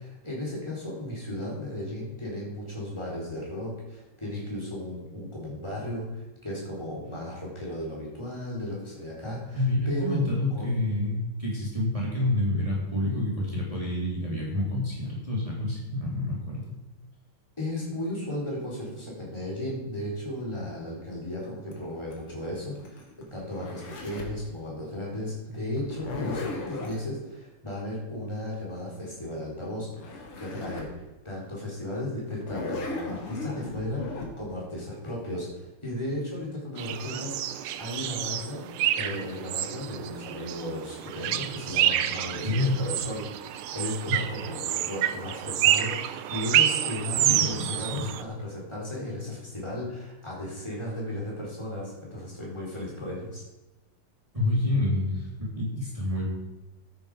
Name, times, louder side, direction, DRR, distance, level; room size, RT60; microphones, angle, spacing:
voice 1, 0.0-10.2 10.5-10.7 17.6-38.7 38.9-53.4, left 1 dB, 10° left, -4 dB, 4.4 m, -35 dB
voice 2, 9.5-16.7 42.4-42.8 44.1-44.2 47.2-48.1 54.3-56.3, left 1 dB, 15° right, -5 dB, 3.7 m, -28 dB
Zipper (clothing), 21.7-24.4 25.8-27.0 29.6-29.7 29.9-30.9 31.4-31.5 32.3-34.3, left 3 dB, 80° left, 2.8 m, -36 dB
sound 1, 36.8-48.2, right 12 dB, 85° right, 1.5 m, -28 dB
13.0 x 9.4 x 5.1 m, 1.1 s
omnidirectional pair, 2.4 m